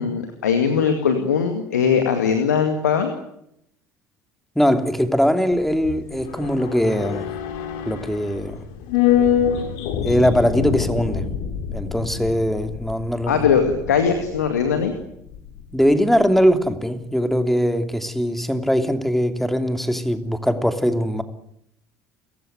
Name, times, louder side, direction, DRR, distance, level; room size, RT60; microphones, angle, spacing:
voice 1, 0.0-3.1 13.3-14.9, left 6 dB, 80° left, 2.3 m, -20 dB
voice 2, 4.5-7.3 7.9-8.6 10.0-11.3 11.7-13.5 15.7-21.2, equal, ahead, 3.0 m, -21 dB
sound 1, 5.5-16.0 16.2-16.3, left 9 dB, 65° left, 3.1 m, -26 dB
29.5 x 15.5 x 9.4 m
figure-of-eight pair, 60°, 9 cm